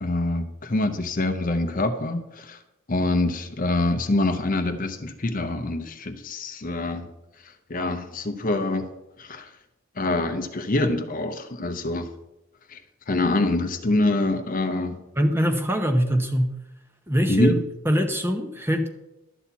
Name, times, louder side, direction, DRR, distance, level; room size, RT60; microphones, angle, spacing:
voice 1, 0.0-2.6 2.9-7.1 7.4-8.9 9.2-9.5 10.0-12.1 12.7-12.8 13.1-15.0 17.3-17.6, left 2 dB, 35° left, 8 dB, 0.7 m, -25 dB
voice 2, 15.2-16.6 17.1-17.5 17.8-18.9, equal, 10° right, 5 dB, 0.8 m, -23 dB
12.0 x 4.3 x 8.2 m, 0.94 s
head